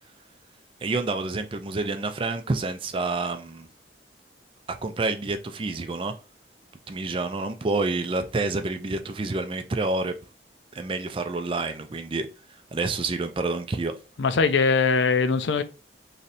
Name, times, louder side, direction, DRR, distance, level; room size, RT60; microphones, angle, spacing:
voice 1, 0.8-3.7 4.7-6.1 6.9-10.2 10.8-12.3 12.7-13.9, right 3 dB, 30° right, 0.4 m, -28 dB
voice 2, 14.2-15.6, left 4 dB, 85° left, 0.5 m, -21 dB
3.2 x 2.7 x 3.9 m
head